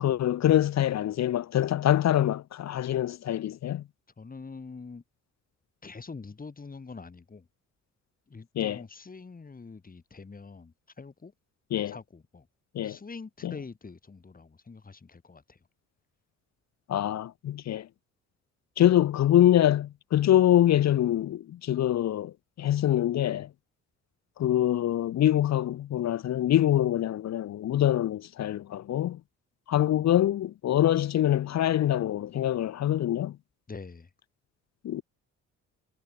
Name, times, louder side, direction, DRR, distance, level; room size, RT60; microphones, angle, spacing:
voice 1, 0.0-3.8 8.6-8.8 11.7-11.9 12.7-13.0 13.4-13.5 16.9-17.9 18.8-23.5 24.4-29.2 29.7-33.4 34.8-35.0, left 12 dB, 60° left, 1.0 m, -24 dB
voice 2, 4.2-5.0 5.8-7.5 8.3-11.3 11.9-12.5 12.8-15.6 33.7-34.1, left 4 dB, 30° left, 5.4 m, -44 dB
cardioid pair, 90°, 30 cm